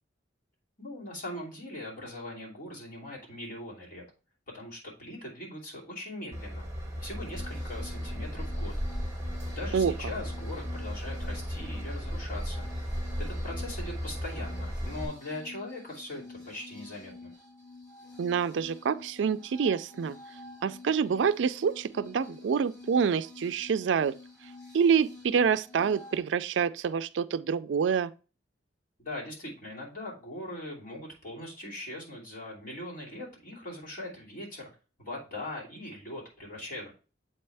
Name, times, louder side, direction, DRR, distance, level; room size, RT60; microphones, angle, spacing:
voice 1, 0.8-4.0 4.5-6.7 7.0-8.7 9.5-12.6 13.2-17.3 29.0-34.7 35.0-36.9, left 1 dB, 45° left, 2.9 m, -41 dB
Train / Engine, 6.3-15.0, equal, 15° right, 1.4 m, -35 dB
sound 1, 7.3-26.2, left 3 dB, 20° left, 3.7 m, -49 dB
voice 2, 18.2-20.2 20.6-24.1 24.7-28.1, right 6 dB, 70° right, 0.4 m, -27 dB
7.7 x 4.3 x 3.3 m
head